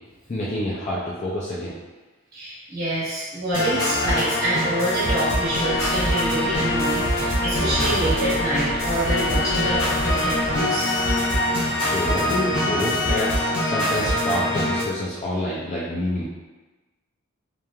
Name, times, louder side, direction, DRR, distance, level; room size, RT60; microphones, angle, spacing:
voice 1, 0.3-1.7 11.8-16.2, left 1 dB, 30° left, -7 dB, 0.4 m, -27 dB
voice 2, 2.3-10.9, right 1 dB, 45° right, -10 dB, 1.2 m, -26 dB
sound 1, 3.5-14.8, left 1 dB, 80° left, 1.1 m, -23 dB
sound 2, 5.4-10.6, equal, ahead, 0.8 m, -35 dB
sound 3, 6.7-13.2, right 1 dB, 80° right, 0.9 m, -39 dB
3.0 x 2.4 x 2.3 m, 1.2 s
head